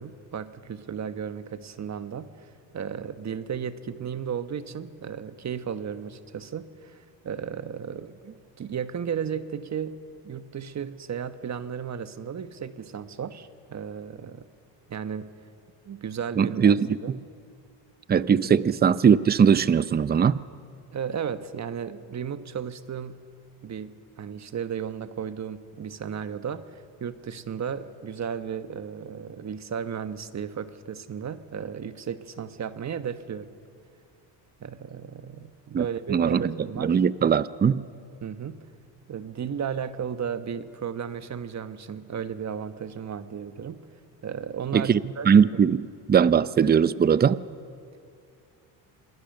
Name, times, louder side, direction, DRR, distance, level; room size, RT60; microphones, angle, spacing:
voice 1, 0.0-10.0 10.2-14.5 14.9-15.3 15.8-16.7 17.0-17.2 20.9-23.2 23.6-33.5 34.6-37.0 38.2-38.6 39.1-43.8 44.2-45.3 45.7-45.8, right 7 dB, 35° right, 11 dB, 1.3 m, -34 dB
voice 2, 16.4-17.2 18.1-20.4 35.7-37.8 44.7-47.4, right 7 dB, 20° right, 17 dB, 0.6 m, -21 dB
26.5 x 20.5 x 6.7 m, 2.4 s
supercardioid pair, 90°, 45 cm